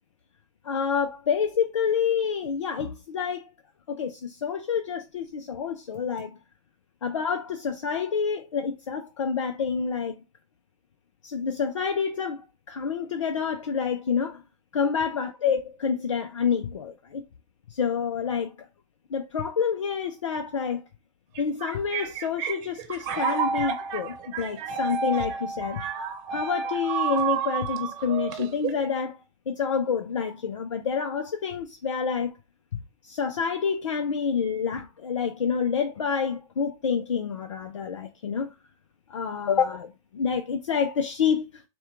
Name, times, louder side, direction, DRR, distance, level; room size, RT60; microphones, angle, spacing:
voice 1, 0.6-3.5 3.9-6.3 7.0-10.2 11.2-14.4 14.7-17.2 17.7-18.7 19.1-20.8 21.4-25.9 26.3-29.2 29.5-32.3 32.7-38.5 39.1-41.6, left 6 dB, 80° left, 0.5 m, -28 dB
sound 1, 21.4-28.9, right 6 dB, 45° right, 0.8 m, -30 dB
4.2 x 2.2 x 3.6 m
hypercardioid pair, 100°, 16 cm